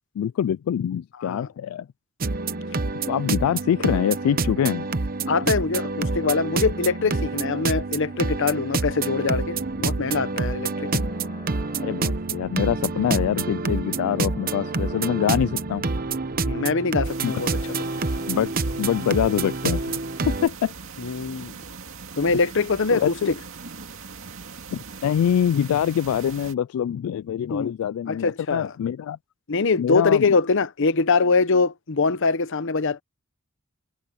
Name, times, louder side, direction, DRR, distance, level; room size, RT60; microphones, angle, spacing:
voice 1, 0.2-1.9 2.8-4.9 10.9-11.0 11.8-15.9 17.2-17.3 18.3-18.5 18.8-19.8 20.3-20.7 22.9-23.3 24.7-29.2 29.8-30.3, left 9 dB, 90° left, 0.3 m, -24 dB
sound 1, 2.2-20.5, right 3 dB, 45° right, 0.9 m, -27 dB
voice 2, 5.3-10.9 16.5-17.6 21.0-21.6 22.2-23.3 27.5-27.7 28.1-28.7 29.5-33.0, left 4 dB, 65° left, 0.8 m, -23 dB
sound 2, 9.5-18.9, left 1 dB, 30° left, 5.2 m, -46 dB
sound 3, 17.0-26.5, right 5 dB, 65° right, 2.5 m, -41 dB
head